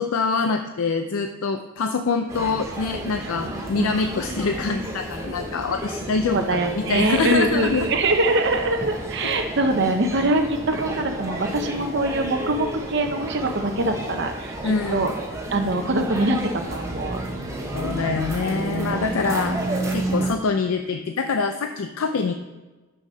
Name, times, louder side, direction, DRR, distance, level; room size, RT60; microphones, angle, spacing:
voice 1, 0.0-7.9 9.2-9.3 14.6-15.1 17.7-19.6 19.9-22.3, left 4 dB, 70° left, 7 dB, 0.4 m, -25 dB
sound 1, 2.3-20.3, right 1 dB, 15° right, 1.0 m, -31 dB
voice 2, 3.8-4.1 6.2-15.1 15.5-17.2, right 2 dB, 50° right, 6 dB, 0.7 m, -23 dB
6.0 x 5.7 x 5.5 m, 1.2 s
head